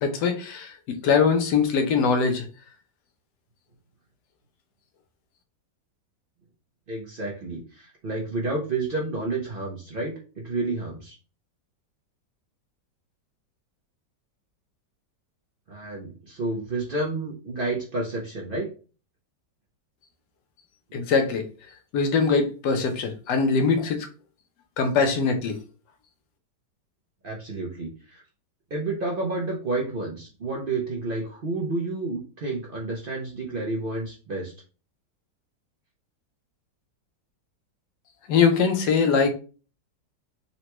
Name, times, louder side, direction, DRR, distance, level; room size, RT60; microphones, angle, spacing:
voice 1, 0.0-2.4 20.9-21.4 21.9-24.1 24.8-25.6 38.3-39.3, left 5 dB, 75° left, 5 dB, 1.2 m, -22 dB
voice 2, 6.9-11.1 15.7-18.7 27.2-28.2 28.7-34.5, right 2 dB, 75° right, -2 dB, 0.5 m, -30 dB
3.9 x 2.2 x 2.9 m, 0.36 s
omnidirectional pair, 1.9 m